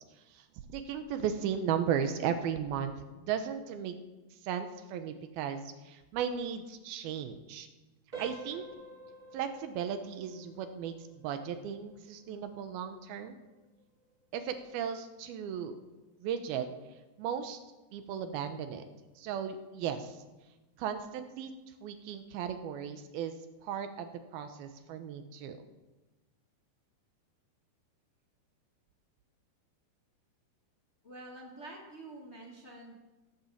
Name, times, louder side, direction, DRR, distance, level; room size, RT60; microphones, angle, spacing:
voice 1, 0.3-4.0 4.4-7.7 8.2-8.6 9.3-13.4 14.3-15.8 16.2-16.7 17.2-17.6 17.9-18.9 19.2-20.2 20.8-21.5 21.8-25.6, right 8 dB, 75° right, 8 dB, 2.6 m, -36 dB
sound 1, 8.1-18.8 19.1-19.4 20.0-20.1 20.6-20.7, right 2 dB, 15° right, 1.6 m, -52 dB
voice 2, 31.0-32.9, right 2 dB, 30° left, -3 dB, 1.1 m, -47 dB
15.5 x 8.8 x 7.1 m, 1.1 s
omnidirectional pair, 4.8 m